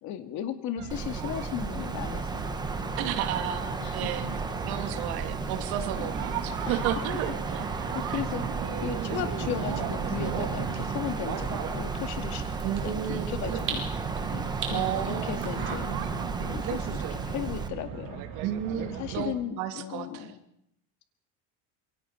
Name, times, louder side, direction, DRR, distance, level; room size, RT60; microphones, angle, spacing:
voice 1, 0.0-3.2 3.8-4.5 6.0-6.3 6.6-7.2 7.9-8.4 8.8-12.6 12.8-15.9 16.4-18.2 18.7-20.4, left 10 dB, 50° left, 7 dB, 2.1 m, -36 dB
sound 1, 0.8-19.3, right 9 dB, 60° right, 2.4 m, -37 dB
Wind, 0.9-17.7, right 3 dB, 10° right, 1.2 m, -34 dB
voice 2, 3.0-4.3 4.6-7.7 8.1-8.2 8.7-8.8 12.6-13.6 14.7-15.4 18.4-20.3, right 10 dB, 85° right, 7 dB, 2.2 m, -33 dB
sound 2, 10.4-15.8, right 5 dB, 30° right, 4.9 m, -42 dB
27.0 x 23.0 x 4.5 m, 0.77 s
cardioid pair, 170°, 36 cm